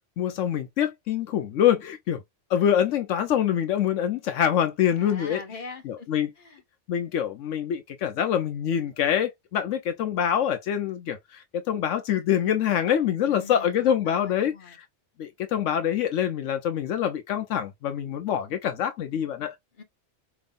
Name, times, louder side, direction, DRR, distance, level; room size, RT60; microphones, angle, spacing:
voice 1, 0.2-2.2 2.5-5.4 5.8-6.3 6.9-14.8 15.2-19.5, left 9 dB, 85° left, 1.0 m, -25 dB
voice 2, 5.0-6.6 13.2-14.8 19.8-19.9, left 4 dB, 45° left, 1.7 m, -43 dB
5.2 x 3.2 x 2.4 m
omnidirectional pair, 1.2 m